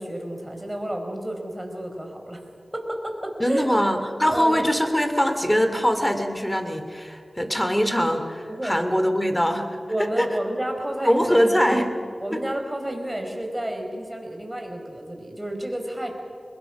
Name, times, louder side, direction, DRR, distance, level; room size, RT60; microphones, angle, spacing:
voice 1, 0.0-2.4 2.7-3.7 4.3-4.7 8.5-8.8 9.9-11.5 12.2-16.1, right 1 dB, 20° right, 3 dB, 4.7 m, -30 dB
voice 2, 3.4-9.7 10.0-10.3 11.0-11.9 12.3-12.4, equal, 10° left, 7 dB, 2.7 m, -22 dB
22.5 x 21.0 x 6.1 m, 2.3 s
cardioid pair, 40°, 0 cm